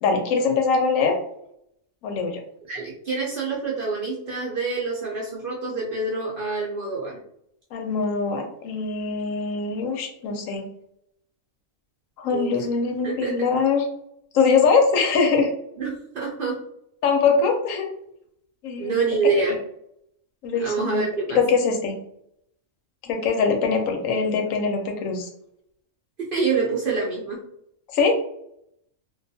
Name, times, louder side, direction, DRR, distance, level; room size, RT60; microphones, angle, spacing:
voice 1, 0.0-1.2 2.0-2.4 7.7-10.6 12.2-13.9 14.3-15.5 17.0-17.9 18.6-19.2 20.4-22.0 23.1-25.3 27.9-28.2, left 5 dB, 80° left, 3 dB, 1.0 m, -22 dB
voice 2, 2.7-7.1 12.3-12.5 13.0-13.4 15.8-16.6 18.8-19.6 20.5-21.4 26.3-27.4, right 4 dB, 60° right, -3 dB, 0.6 m, -26 dB
2.4 x 2.3 x 2.6 m, 0.74 s
omnidirectional pair, 1.4 m